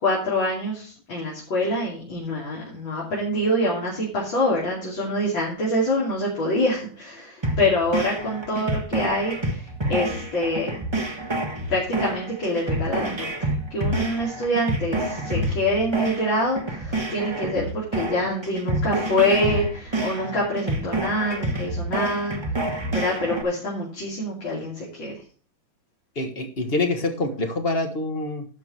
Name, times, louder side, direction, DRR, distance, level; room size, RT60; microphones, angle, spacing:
voice 1, 0.0-10.7 11.7-13.3 13.7-25.2, left 1 dB, 90° left, -5 dB, 3.6 m, -25 dB
sound 1, 7.4-23.4, right 1 dB, 20° right, 1.0 m, -28 dB
voice 2, 26.1-28.5, left 2 dB, 30° left, 5 dB, 1.6 m, -26 dB
12.0 x 5.2 x 6.3 m, 0.41 s
omnidirectional pair, 2.1 m